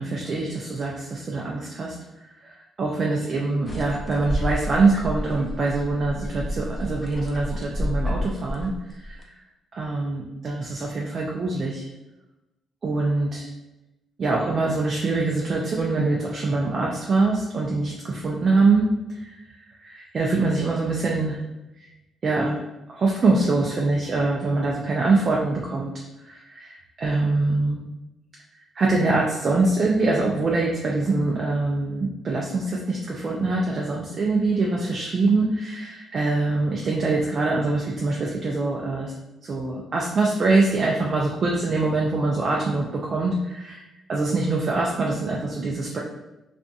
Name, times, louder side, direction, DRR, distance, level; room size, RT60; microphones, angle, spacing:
voice 1, 0.0-1.9 2.4-2.5 2.8-8.7 9.0-9.2 9.7-11.9 12.8-13.5 14.2-18.9 19.1-21.4 21.8-21.9 22.2-22.6 22.9-25.9 26.2-27.8 28.8-39.1 39.4-43.8 44.1-46.0, right 3 dB, 45° right, -2 dB, 0.4 m, -24 dB
sound 1, 3.7-9.2, equal, 25° left, 0.5 m, -30 dB
2.7 x 2.5 x 2.3 m, 0.97 s
cardioid pair, 90°, 0 cm